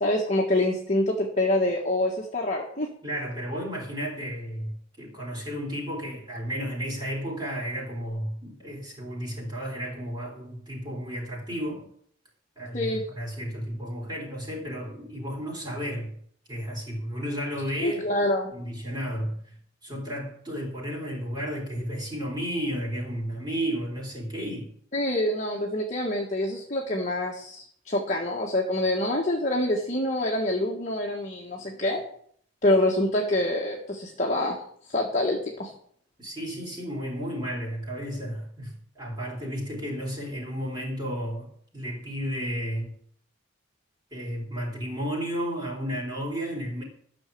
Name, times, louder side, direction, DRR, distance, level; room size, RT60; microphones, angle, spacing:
voice 1, 0.0-2.9 12.7-13.0 17.8-18.5 24.9-32.0 32.6-34.6 34.9-35.7, left 1 dB, 35° left, 1.5 m, -26 dB
voice 2, 3.0-11.9 12.6-16.1 16.5-18.1 18.5-19.5 19.8-24.7 36.2-42.9 44.1-46.8, equal, 20° right, 3.8 m, -33 dB
13.0 x 6.4 x 8.5 m
head